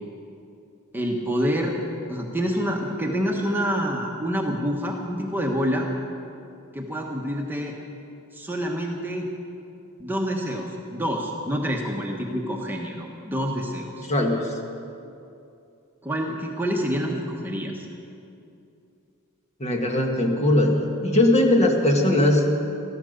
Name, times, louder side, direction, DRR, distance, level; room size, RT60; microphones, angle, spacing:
voice 1, 0.9-1.8 2.1-5.9 6.7-7.7 8.3-9.3 10.0-14.1 16.0-17.8, equal, 10° right, 0 dB, 1.2 m, -27 dB
voice 2, 14.1-14.4 19.6-22.4, left 1 dB, 30° left, 2 dB, 1.7 m, -20 dB
14.5 x 13.0 x 6.7 m, 2.6 s
head